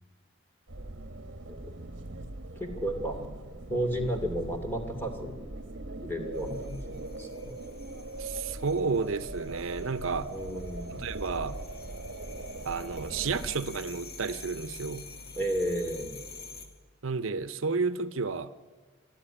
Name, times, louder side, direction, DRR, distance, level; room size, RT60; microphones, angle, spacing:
sound 1, 0.7-13.6, right 2 dB, 60° right, 1.2 m, -41 dB
voice 1, 2.6-3.2 3.7-5.4 6.0-7.6 10.3-11.0 15.4-16.2, right 1 dB, 10° left, 4 dB, 2.6 m, -33 dB
sound 2, 6.3-16.7, left 3 dB, 50° left, 2.2 m, -47 dB
voice 2, 8.2-10.3 10.9-11.6 12.6-15.1 17.0-18.5, right 4 dB, 75° right, 13 dB, 0.7 m, -31 dB
25.5 x 12.0 x 9.9 m, 1.4 s
head